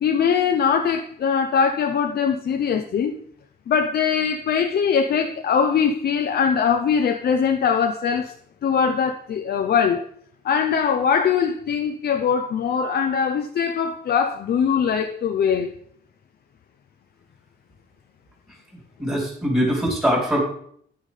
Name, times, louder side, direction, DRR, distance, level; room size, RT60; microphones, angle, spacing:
voice 1, 0.0-3.1 3.7-8.3 8.6-10.0 10.4-15.7, left 7 dB, 60° left, 0.6 m, -21 dB
voice 2, 19.0-20.4, equal, 10° right, 3.1 m, -22 dB
10.0 x 9.1 x 3.3 m
cardioid pair, 130°, 19 cm